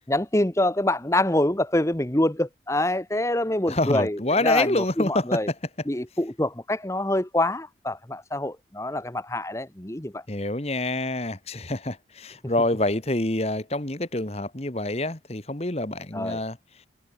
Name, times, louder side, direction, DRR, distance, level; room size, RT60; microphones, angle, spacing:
voice 1, 0.1-5.5 5.9-10.2 16.1-16.4, left 1 dB, 15° left, 1.1 m, -25 dB
voice 2, 3.7-5.4 10.3-16.6, left 2 dB, 35° left, 1.7 m, -26 dB
head